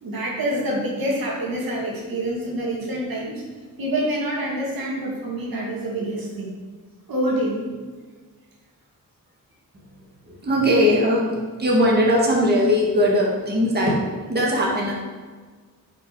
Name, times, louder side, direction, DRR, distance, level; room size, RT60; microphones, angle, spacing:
voice 1, 0.0-3.3 3.8-6.5 7.1-7.6, right 1 dB, 90° right, -3 dB, 2.4 m, -26 dB
voice 2, 10.3-14.0 14.3-14.9, equal, 30° right, -3 dB, 1.8 m, -19 dB
9.3 x 5.7 x 4.7 m, 1.4 s
wide cardioid pair, 125°, 34 cm